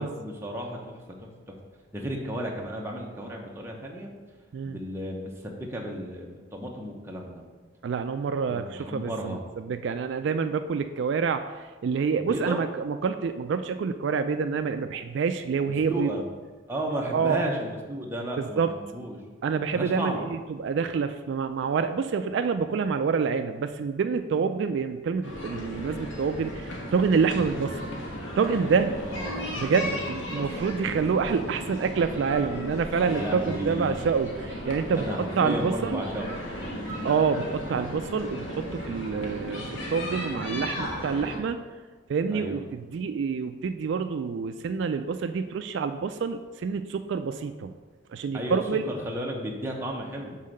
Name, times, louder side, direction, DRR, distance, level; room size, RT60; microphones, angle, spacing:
voice 1, 0.0-1.5 1.9-4.1 4.6-7.4 8.5-9.4 12.3-12.6 15.7-16.2 16.7-19.2 19.7-20.3 29.0-31.0 33.1-34.0 35.0-36.4 36.8-37.1 42.3-42.7 48.3-48.6 48.9-50.4, right 1 dB, 15° right, -1 dB, 0.8 m, -34 dB
voice 2, 7.8-11.4 11.8-16.1 17.1-17.4 18.4-18.7 19.4-27.8 28.4-29.0 29.6-36.0 37.0-41.6 42.1-47.7 48.1-48.8, right 5 dB, 65° right, 8 dB, 0.3 m, -27 dB
sound 1, 25.2-41.4, equal, 80° left, 1.3 m, -35 dB
5.6 x 4.5 x 6.3 m, 1.4 s
head